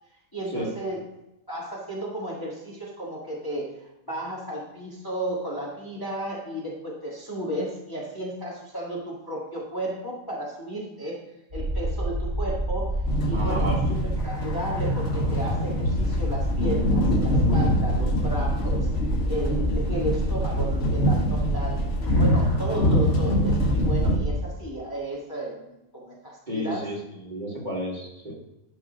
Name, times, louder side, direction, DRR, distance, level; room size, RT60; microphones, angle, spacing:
voice 1, 0.3-1.0 1.5-11.2 11.5-14.0 14.2-18.9 19.3-26.9, right 1 dB, 15° left, -5 dB, 1.5 m, -33 dB
sound 1, 11.5-24.4, right 1 dB, 80° right, 3.4 m, -29 dB
sound 2, 13.1-24.2, equal, 60° left, 1.5 m, -25 dB
voice 2, 13.3-13.8 26.5-28.3, right 1 dB, 30° right, -5 dB, 2.3 m, -32 dB
11.0 x 3.7 x 5.0 m, 0.88 s
omnidirectional pair, 1.5 m